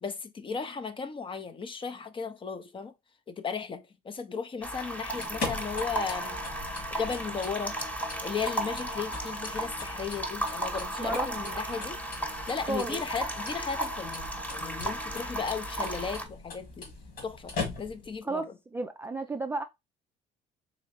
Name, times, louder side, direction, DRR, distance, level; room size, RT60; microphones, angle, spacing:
voice 1, 0.0-2.9 3.3-6.4 6.7-7.8 8.2-12.0 12.5-16.9 17.2-18.5, left 5 dB, 30° left, 0.6 m, -35 dB
sound 1, 4.6-16.2, right 1 dB, 10° left, 1.1 m, -35 dB
sound 2, 5.0-18.2, left 3 dB, 65° left, 2.1 m, -41 dB
voice 2, 11.0-11.3 12.6-13.0 18.2-19.6, right 3 dB, 15° right, 0.4 m, -33 dB
3.8 x 3.1 x 3.0 m
cardioid pair, 110°, 17 cm